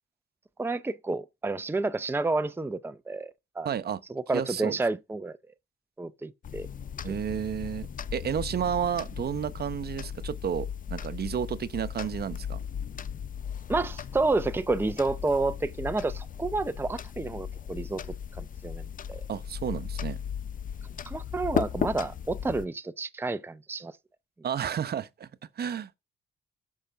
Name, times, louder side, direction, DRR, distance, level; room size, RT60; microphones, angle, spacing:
voice 1, 0.6-3.3 3.6-3.7 4.1-5.4 6.0-6.7 7.1-7.2 13.7-18.0 18.4-19.2 21.0-23.9, right 3 dB, 10° right, 0.7 m, -30 dB
voice 2, 3.6-4.0 4.3-4.8 7.0-12.6 19.3-20.2 24.4-25.3 25.6-26.0, right 8 dB, 55° right, 1.0 m, -31 dB
sound 1, 6.4-22.7, left 8 dB, 45° left, 0.7 m, -36 dB
13.5 x 5.8 x 5.1 m
cardioid pair, 90°, 20 cm